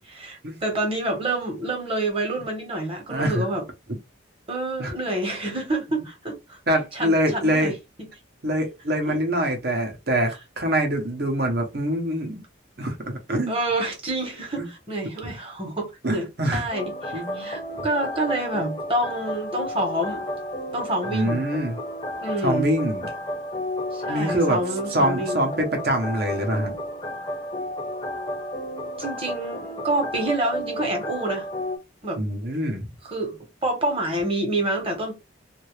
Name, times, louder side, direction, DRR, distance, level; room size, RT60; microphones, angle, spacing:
voice 1, 0.1-3.6 4.5-6.6 6.9-7.7 9.1-9.2 13.5-20.2 20.7-21.4 22.2-22.7 23.9-25.5 29.0-31.5 32.0-32.2 33.0-35.1, right 1 dB, 30° right, 1.2 m, -28 dB
voice 2, 3.1-3.5 3.9-4.0 4.8-4.9 6.7-7.7 8.4-12.4 12.8-13.5 14.6-14.7 15.2-15.3 16.0-16.7 17.1-17.9 21.1-21.8 22.4-23.1 24.1-24.6 24.9-26.7 32.2-32.9, right 1 dB, 50° right, 0.9 m, -25 dB
sound 1, 16.7-31.8, equal, 20° left, 0.6 m, -32 dB
2.8 x 2.6 x 3.2 m
head